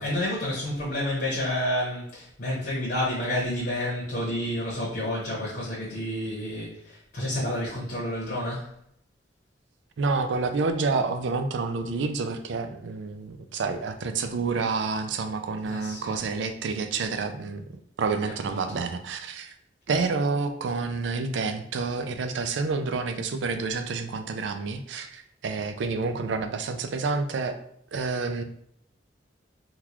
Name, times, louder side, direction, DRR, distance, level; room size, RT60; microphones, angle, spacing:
voice 1, 0.0-8.7 15.6-16.2 18.5-18.6, left 1 dB, 60° left, -6 dB, 1.0 m, -30 dB
voice 2, 10.0-17.6 18.0-19.5 19.9-27.6 27.9-28.4, right 4 dB, 85° right, 8 dB, 0.4 m, -29 dB
3.7 x 2.3 x 2.9 m, 0.68 s
head